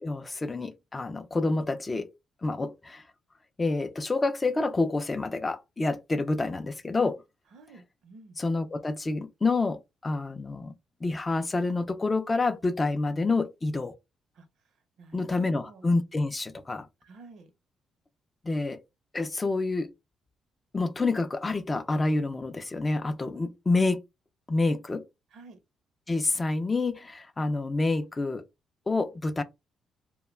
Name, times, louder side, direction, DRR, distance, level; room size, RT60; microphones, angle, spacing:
voice 1, 0.0-2.1 2.4-3.0 3.6-7.2 8.4-10.7 11.0-13.9 15.1-16.9 18.4-18.8 19.1-19.9 20.7-24.0 24.5-25.1 26.1-28.4 28.9-29.4, left 3 dB, 25° left, 0.4 m, -28 dB
voice 2, 7.5-8.4 14.3-14.5 15.0-15.9 17.0-17.5 25.3-25.6, right 3 dB, 75° right, 0.7 m, -50 dB
2.2 x 2.1 x 3.2 m
cardioid pair, 90°, 0 cm